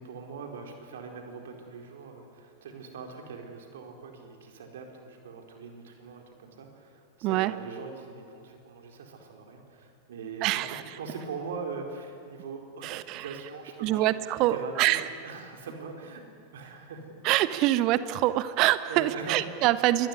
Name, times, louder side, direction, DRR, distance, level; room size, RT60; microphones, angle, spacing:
voice 1, 0.0-16.2 16.5-17.5 18.9-19.5, right 5 dB, 60° right, 3 dB, 4.5 m, -42 dB
voice 2, 7.2-7.5 10.4-10.8 12.8-13.2 13.8-15.1 17.2-20.1, right 15 dB, 40° right, 14 dB, 1.2 m, -25 dB
27.0 x 21.5 x 9.7 m, 2.3 s
figure-of-eight pair, 90°, 0 cm